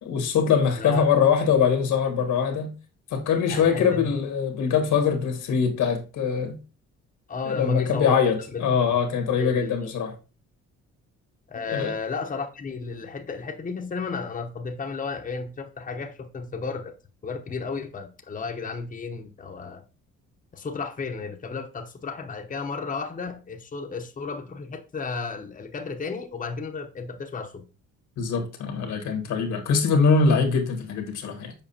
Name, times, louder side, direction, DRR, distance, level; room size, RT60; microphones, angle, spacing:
voice 1, 0.0-2.7 3.1-6.6 7.5-10.1 11.7-11.9 28.2-31.5, left 6 dB, 80° left, 1.5 m, -23 dB
voice 2, 3.5-4.1 7.3-8.9 9.4-9.9 11.5-16.9 17.2-19.8 20.5-27.6, left 4 dB, 25° left, 0.8 m, -33 dB
7.1 x 4.7 x 2.8 m
cardioid pair, 90°, 30 cm